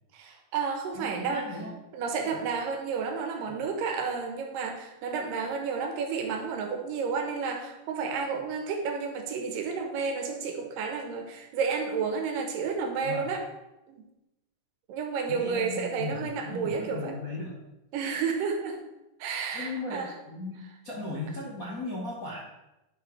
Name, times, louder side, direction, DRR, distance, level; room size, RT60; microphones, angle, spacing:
voice 1, 0.1-1.6 1.9-13.4 13.9-14.0 14.9-17.2 17.9-18.8 19.2-20.1, right 5 dB, 90° right, 3 dB, 2.7 m, -31 dB
voice 2, 0.9-1.7 2.2-2.4 3.5-3.6 13.0-13.3 15.3-17.6 19.5-22.4, left 2 dB, 55° left, -7 dB, 0.9 m, -37 dB
10.5 x 5.8 x 3.2 m, 0.95 s
omnidirectional pair, 3.8 m